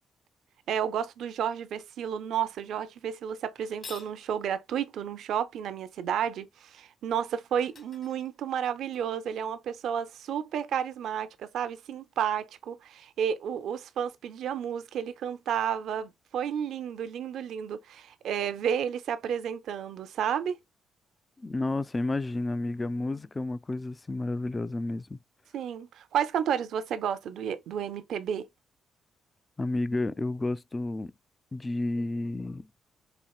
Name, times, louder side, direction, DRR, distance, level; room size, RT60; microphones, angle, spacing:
voice 1, 0.7-20.6 25.5-28.5, right 8 dB, 75° right, 0.5 m, -31 dB
sound 1, 3.6-4.2 7.1-7.2 7.6-9.0, left 4 dB, 40° left, 1.5 m, -48 dB
voice 2, 21.4-25.2 29.6-31.1 31.5-32.7, left 2 dB, 20° left, 0.3 m, -31 dB
4.3 x 2.8 x 2.3 m
cardioid pair, 90°, 0 cm